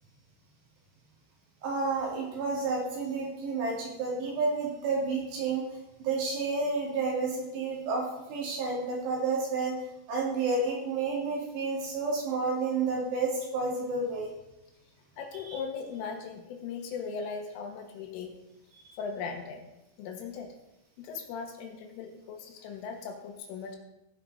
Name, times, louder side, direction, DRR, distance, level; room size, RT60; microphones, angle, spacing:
voice 1, 1.6-5.6 6.0-8.0 8.3-9.7 10.1-14.3 15.5-15.6 18.8-19.0, right 3 dB, 60° right, -2 dB, 4.5 m, -30 dB
voice 2, 15.2-18.3 19.0-19.6 20.0-20.5 21.0-23.8, left 5 dB, 80° left, 3 dB, 3.9 m, -38 dB
17.0 x 6.0 x 4.9 m, 0.90 s
omnidirectional pair, 5.8 m